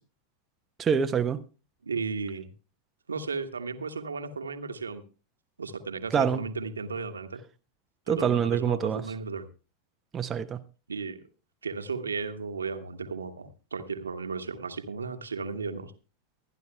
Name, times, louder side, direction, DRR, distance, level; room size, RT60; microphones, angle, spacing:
voice 1, 0.8-1.4 6.1-6.4 8.1-9.0 10.1-10.6, right 7 dB, 20° right, 0.7 m, -25 dB
voice 2, 1.8-2.5 3.1-5.0 5.6-7.4 8.1-9.5 10.9-11.2 11.6-15.9, right 4 dB, 75° right, 1.2 m, -34 dB
23.5 x 10.5 x 2.2 m
figure-of-eight pair, 90°, 0 cm